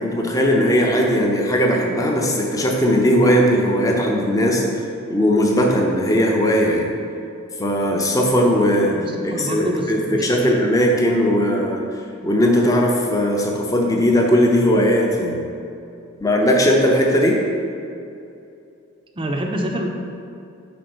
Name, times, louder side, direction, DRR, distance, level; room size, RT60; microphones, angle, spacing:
voice 1, 0.0-4.6 5.1-6.9 7.6-9.0 9.2-11.8 12.2-15.4 16.2-17.4, equal, 15° left, 0 dB, 0.6 m, -18 dB
voice 2, 8.9-10.6 19.2-19.9, right 1 dB, 25° right, 2 dB, 0.5 m, -27 dB
5.1 x 4.2 x 6.0 m, 2.6 s
head